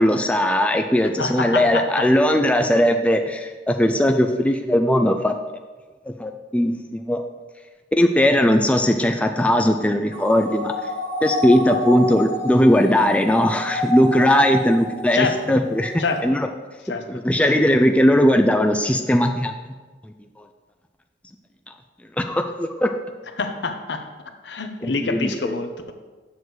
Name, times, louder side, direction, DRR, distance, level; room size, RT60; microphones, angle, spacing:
voice 1, 0.0-5.3 6.1-7.2 8.0-10.7 11.2-16.5 17.1-19.5 22.2-22.9 24.8-25.6, equal, 5° left, 5 dB, 0.4 m, -19 dB
voice 2, 1.2-2.0 15.1-15.6 16.0-16.2 16.9-17.0 17.4-17.6 23.4-24.0 24.4-25.9, left 4 dB, 70° left, 6 dB, 0.8 m, -26 dB
sound 1, 10.1-15.2 15.7-16.2, left 1 dB, 55° left, 1.9 m, -29 dB
7.1 x 6.2 x 4.7 m, 1.3 s
head